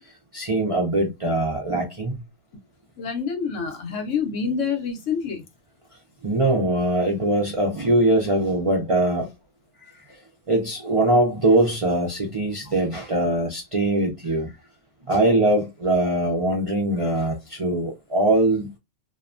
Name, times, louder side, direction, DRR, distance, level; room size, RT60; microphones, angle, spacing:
voice 1, 0.3-2.2 6.2-9.3 10.5-14.5 15.1-18.7, right 1 dB, 50° right, 0.4 m, -22 dB
voice 2, 3.0-5.4 15.1-15.2, left 6 dB, 85° left, 1.1 m, -27 dB
2.7 x 2.2 x 2.4 m
omnidirectional pair, 1.3 m